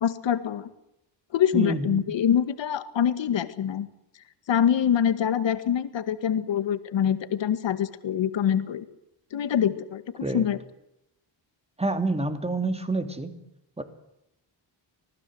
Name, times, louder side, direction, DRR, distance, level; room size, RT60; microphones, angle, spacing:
voice 1, 0.0-0.7 1.3-3.9 4.5-8.9 9.3-10.6, left 9 dB, 75° left, 11 dB, 2.1 m, -25 dB
voice 2, 1.5-2.0 10.2-10.5 11.8-13.3 13.8-13.9, right 2 dB, 15° right, 8 dB, 2.9 m, -28 dB
26.0 x 19.5 x 8.0 m, 0.82 s
wide cardioid pair, 125°, 45 cm